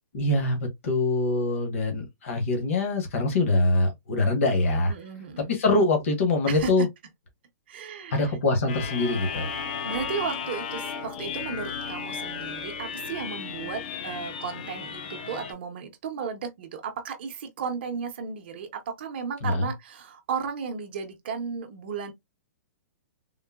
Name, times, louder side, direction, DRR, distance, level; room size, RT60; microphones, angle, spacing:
voice 1, 0.1-4.9 5.5-6.9 8.1-9.5 19.4-19.7, left 2 dB, 50° left, 1.0 m, -24 dB
voice 2, 4.9-5.5 6.5-6.7 7.7-8.4 9.8-22.1, right 6 dB, 40° right, 0.6 m, -34 dB
sound 1, 8.7-15.5, left 6 dB, 30° left, 0.4 m, -34 dB
3.7 x 2.0 x 2.2 m
hypercardioid pair, 180°, 9 cm